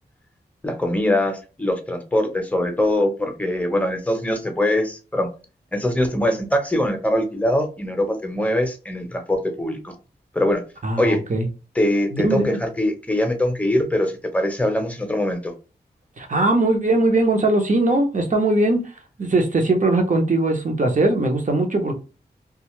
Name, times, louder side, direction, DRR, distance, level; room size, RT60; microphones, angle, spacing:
voice 1, 0.6-5.3 5.7-9.9 10.3-10.6 11.0-11.2 11.7-15.5, left 1 dB, 10° left, 0.8 m, -22 dB
voice 2, 10.8-11.5 12.1-12.6 16.2-18.9 19.2-21.9, right 2 dB, 45° right, 0.8 m, -20 dB
2.5 x 2.3 x 3.1 m
cardioid pair, 60°, 18 cm